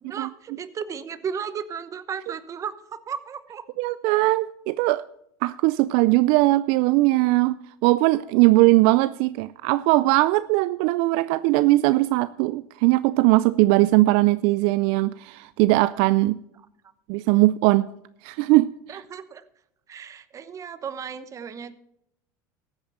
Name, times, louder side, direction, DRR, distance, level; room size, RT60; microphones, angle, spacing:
voice 1, 0.0-2.7 3.1-3.7 18.9-19.4 19.9-21.8, right 7 dB, 35° right, 1.0 m, -34 dB
voice 2, 3.8-5.1 5.4-7.6 7.8-16.4 17.1-17.9 18.2-19.0, right 19 dB, 65° right, 0.4 m, -20 dB
14.5 x 8.8 x 4.3 m
supercardioid pair, 100°, 10 cm